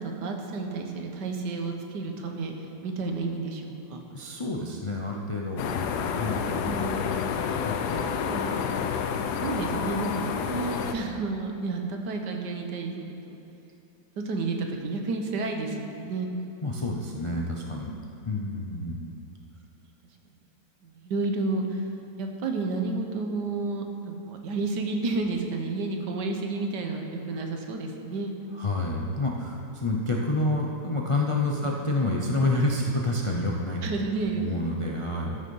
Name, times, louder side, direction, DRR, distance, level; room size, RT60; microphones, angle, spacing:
voice 1, 0.0-2.5 2.8-4.0 6.3-7.1 8.3-8.8 9.4-13.4 14.2-16.3 17.9-18.4 20.9-21.9 22.2-28.3 31.6-31.7 33.8-34.7, right 3 dB, 85° right, 3 dB, 1.6 m, -31 dB
voice 2, 4.1-5.6 6.2-6.6 7.5-8.1 16.6-17.9 18.2-19.2 28.5-33.8 34.4-35.4, left 2 dB, 45° left, -2 dB, 0.4 m, -28 dB
sound 1, 5.6-10.9, left 7 dB, 75° left, 1.2 m, -29 dB
13.0 x 6.6 x 5.4 m, 2.8 s
omnidirectional pair, 1.8 m